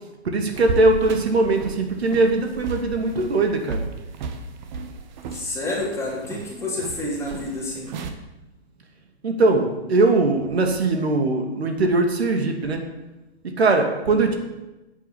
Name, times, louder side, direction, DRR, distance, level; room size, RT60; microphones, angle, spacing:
voice 1, 0.2-3.8 9.2-12.8 13.4-14.3, right 2 dB, 75° right, 4 dB, 2.6 m, -20 dB
sound 1, 0.5-8.1, right 4 dB, 45° right, 1.6 m, -34 dB
voice 2, 5.3-7.9 14.1-14.3, left 2 dB, 10° left, -4 dB, 3.5 m, -29 dB
9.1 x 8.4 x 8.7 m, 1.0 s
hypercardioid pair, 140°, 32 cm